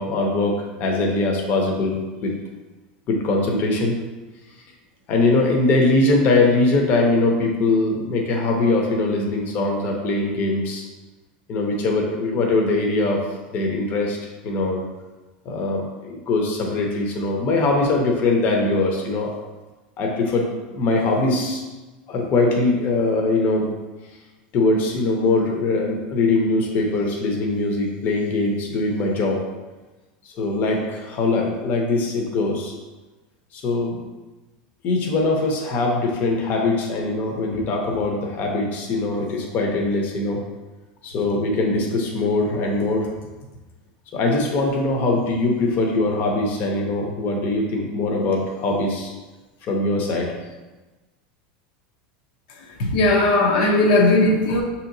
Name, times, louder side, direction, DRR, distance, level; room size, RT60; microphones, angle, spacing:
voice 1, 0.0-2.3 3.1-4.0 5.1-10.9 11.5-13.2 13.5-14.2 14.4-14.8 15.4-19.3 20.0-21.6 22.1-23.7 24.5-29.4 30.2-32.7 33.5-34.0 34.8-40.4 41.0-43.1 44.1-49.1 49.6-50.4, left 2 dB, 45° left, 1 dB, 0.7 m, -22 dB
voice 2, 52.8-54.6, left 2 dB, 75° left, 0 dB, 0.7 m, -17 dB
5.5 x 2.8 x 2.7 m, 1.2 s
supercardioid pair, 125°, 5 cm